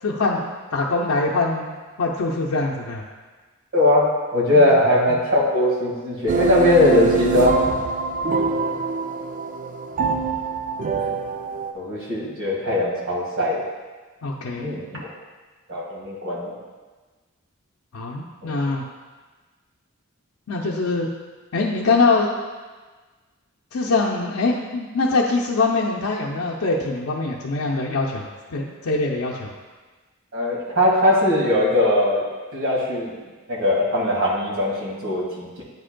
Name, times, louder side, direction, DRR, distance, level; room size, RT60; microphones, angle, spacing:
voice 1, 0.0-0.4 0.7-1.7 2.0-3.0 4.5-4.7 5.1-5.2 14.2-14.7 17.9-18.8 20.5-21.1 21.5-22.3 23.7-29.5, left 3 dB, 85° left, -2 dB, 0.5 m, -23 dB
voice 2, 3.7-4.1 4.3-7.6 11.7-13.5 14.5-14.9 15.7-16.5 18.4-18.6 30.3-32.2 32.5-33.2 33.5-35.6, left 1 dB, 65° right, -4 dB, 1.7 m, -20 dB
sound 1, 6.3-11.7, right 5 dB, 40° right, 0.4 m, -24 dB
9.2 x 5.0 x 2.2 m, 1.3 s
head